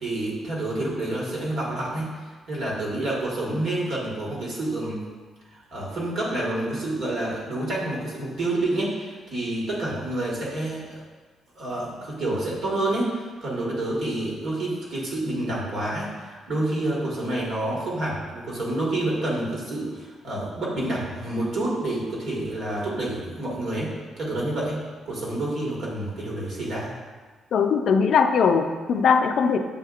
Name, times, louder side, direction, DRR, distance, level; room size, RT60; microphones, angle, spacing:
voice 1, 0.0-2.1 2.5-5.0 5.5-11.0 11.5-23.9 24.2-24.8 25.1-26.9, right 1 dB, 65° right, -5 dB, 1.5 m, -28 dB
voice 2, 27.5-29.6, left 6 dB, 65° left, 6 dB, 0.3 m, -20 dB
7.3 x 2.8 x 2.4 m, 1.4 s
cardioid pair, 90°, 0 cm